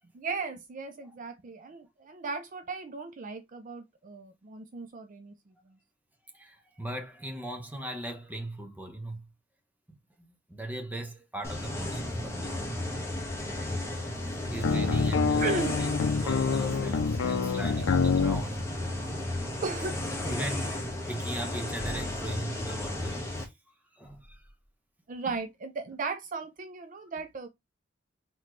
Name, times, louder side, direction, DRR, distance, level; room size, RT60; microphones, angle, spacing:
voice 1, 0.1-5.8 14.8-15.0 15.4-15.8 17.7-17.9 19.6-20.4 25.1-27.5, right 4 dB, 40° right, 0.4 m, -37 dB
voice 2, 6.3-9.2 9.9-12.5 14.5-15.9 16.2-18.7 20.3-23.5 23.9-24.5, right 1 dB, 10° right, 0.9 m, -38 dB
sound 1, 11.4-23.5, left 1 dB, 15° left, 1.2 m, -34 dB
sound 2, 14.6-18.4, left 5 dB, 85° left, 0.5 m, -26 dB
4.1 x 3.0 x 3.1 m
head